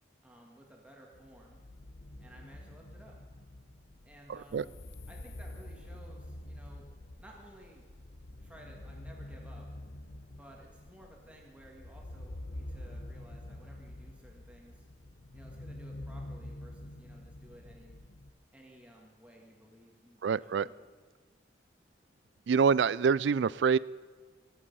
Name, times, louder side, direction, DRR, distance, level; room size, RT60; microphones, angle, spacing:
voice 1, 0.2-1.6 2.2-3.2 4.1-4.7 5.1-6.9 7.2-7.8 8.4-9.7 10.3-14.8 15.3-18.0 18.5-20.8, right 1 dB, 5° right, -1 dB, 2.0 m, -56 dB
sound 1, 1.1-18.3, left 1 dB, 65° left, 0.9 m, -47 dB
voice 2, 4.3-4.6 20.2-20.7 22.5-23.8, right 6 dB, 75° right, 21 dB, 0.3 m, -26 dB
24.5 x 8.3 x 5.5 m, 1.4 s
head